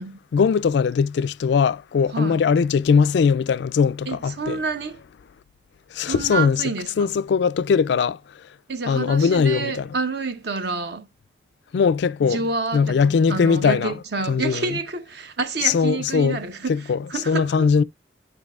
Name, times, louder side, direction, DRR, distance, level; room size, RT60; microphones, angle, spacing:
voice 1, 0.3-4.6 5.9-6.6 7.0-8.2 8.9-9.9 11.7-12.4 12.7-13.9 14.3-14.7 15.6-16.4 16.7-17.0 17.3-17.8, left 6 dB, 60° left, 0.3 m, -20 dB
voice 2, 2.1-2.4 4.1-5.0 6.0-7.1 8.7-11.1 12.2-17.7, right 4 dB, 60° right, 0.8 m, -28 dB
9.8 x 5.2 x 2.4 m
head